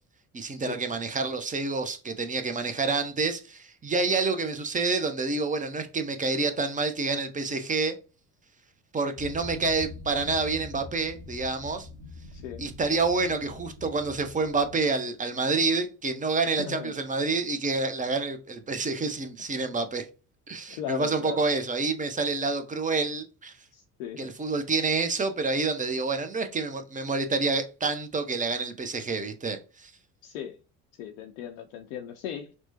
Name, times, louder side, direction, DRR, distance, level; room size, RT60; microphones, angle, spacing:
voice 1, 0.3-7.9 8.9-11.9 12.6-20.1 20.5-23.6 24.2-29.9, right 3 dB, 15° right, 0.6 m, -28 dB
sound 1, 9.2-14.8, left 3 dB, 80° right, 1.2 m, -44 dB
voice 2, 12.3-12.6 16.6-16.9 20.7-21.4 23.7-24.3 30.2-30.6 31.0-32.5, left 9 dB, 60° left, 0.6 m, -37 dB
6.0 x 2.1 x 2.8 m
figure-of-eight pair, 50°, 46 cm